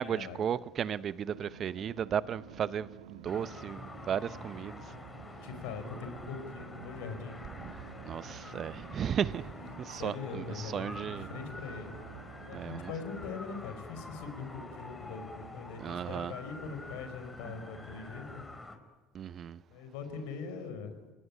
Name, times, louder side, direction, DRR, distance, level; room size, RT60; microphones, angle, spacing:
voice 1, 0.0-4.8 7.6-7.8 8.0-9.5 9.8-11.3 12.5-12.9 15.8-16.3 19.1-19.6, right 8 dB, 45° right, 0.9 m, -35 dB
sound 1, 1.3-13.3, right 8 dB, 85° right, 1.6 m, -51 dB
sound 2, 3.3-18.8, left 2 dB, 20° left, 5.2 m, -47 dB
voice 2, 5.4-7.3 9.9-11.9 12.5-18.4 19.7-20.9, left 5 dB, 70° left, 5.1 m, -42 dB
29.0 x 19.5 x 9.9 m
hypercardioid pair, 65°, 0 cm